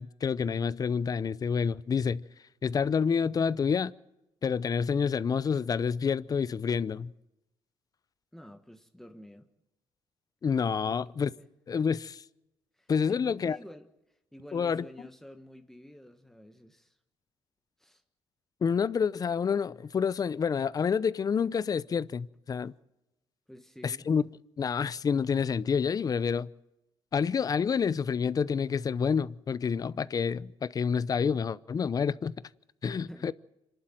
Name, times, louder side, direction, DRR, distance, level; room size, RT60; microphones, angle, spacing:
voice 1, 0.0-2.2 2.6-3.9 4.4-7.1 10.4-11.3 11.7-12.2 12.9-13.6 14.5-14.9 18.6-22.7 23.8-24.2 24.6-26.5 27.1-32.3 32.8-33.3, left 6 dB, 40° left, 0.6 m, -28 dB
voice 2, 8.3-9.5 12.8-13.9 14.3-16.9 17.8-18.0 23.5-24.1 33.1-33.3, equal, 5° left, 1.4 m, -49 dB
26.0 x 11.5 x 9.1 m
cardioid pair, 95°, 10 cm